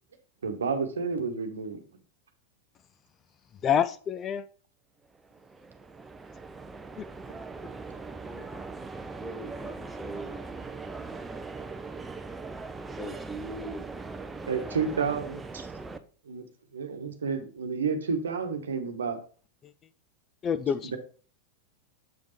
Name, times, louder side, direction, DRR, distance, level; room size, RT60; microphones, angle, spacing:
voice 1, 0.4-1.8 14.5-15.7 16.2-16.4 16.7-19.2 20.8-21.0, right 5 dB, 75° right, 6 dB, 1.1 m, -30 dB
voice 2, 3.6-4.5 7.0-7.1 19.6-19.7 20.4-20.9, left 8 dB, 30° left, 13 dB, 0.4 m, -27 dB
sound 1, 5.1-16.0, right 3 dB, 15° right, 0.6 m, -40 dB
voice 3, 9.2-11.2 12.8-15.2, right 1 dB, 5° left, 6 dB, 1.2 m, -43 dB
7.5 x 5.3 x 3.1 m, 0.40 s
figure-of-eight pair, 90°, 0 cm